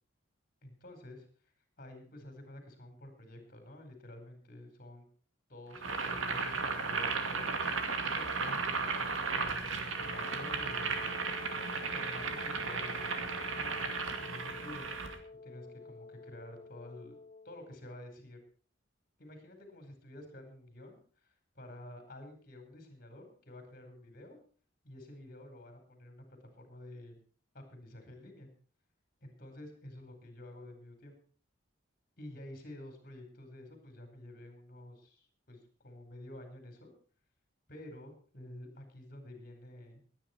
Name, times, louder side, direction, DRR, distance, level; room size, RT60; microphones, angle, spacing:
voice 1, 0.6-1.3 1.8-5.1 5.5-7.5 8.0-11.1 11.9-13.9 14.2-14.9 15.4-17.2 17.4-18.4 19.2-24.4 24.8-27.2 27.5-28.5 29.2-31.1 32.2-36.9 37.7-40.0, left 1 dB, 45° left, 5 dB, 4.6 m, -50 dB
Boiling, 5.7-15.2, right 4 dB, 85° right, 2.3 m, -35 dB
Wind instrument woodwind instrument, 10.0-17.8, left 3 dB, 30° left, 1.0 m, -50 dB
21.0 x 9.8 x 4.5 m, 0.42 s
head